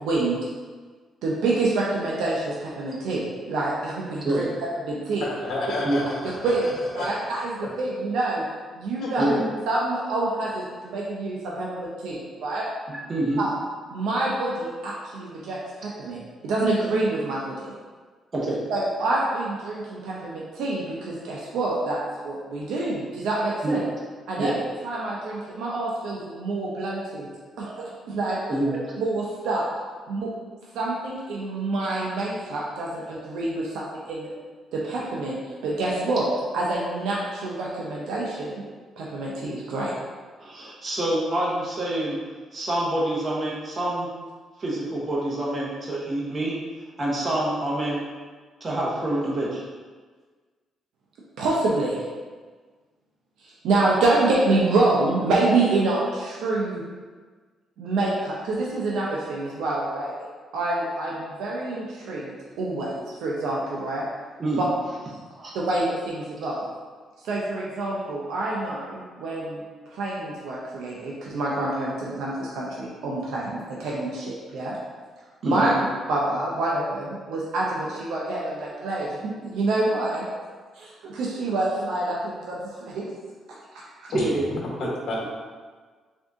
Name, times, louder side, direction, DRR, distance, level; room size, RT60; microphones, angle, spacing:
voice 1, 0.0-0.5 1.2-4.5 4.8-5.2 6.4-8.4 8.7-9.4 9.7-12.7 13.4-13.5 13.9-17.7 18.7-23.8 24.3-24.5 24.8-27.3 27.6-28.4 29.0-29.6 30.1-30.3 30.7-34.3 34.7-35.4 35.6-36.3 36.5-38.6 39.0-39.9 51.4-52.0 53.4-56.8 57.8-60.1 60.5-62.2 62.6-64.0 64.6-64.7 65.5-66.7 67.2-69.6 69.9-74.8 75.4-75.7 76.1-80.2 80.7-83.1 84.0-84.1, right 2 dB, 85° right, -4 dB, 0.6 m, -27 dB
voice 2, 5.2-6.5 6.9-7.1 7.6-7.7 9.0-9.4 84.1-84.2 84.5-85.3, left 2 dB, 60° left, -3 dB, 1.0 m, -30 dB
voice 3, 12.9-13.4 18.3-18.6 23.6-23.8 24.4-24.5 28.5-28.9 40.4-42.2 42.5-44.1 44.6-46.5 47.0-48.0 48.6-49.7 64.4-64.6 65.3-65.5 75.4-75.7 84.1-84.5 84.8-84.9, right 1 dB, 35° right, -4 dB, 0.9 m, -26 dB
3.6 x 2.6 x 3.5 m, 1.5 s
cardioid pair, 90°, 0 cm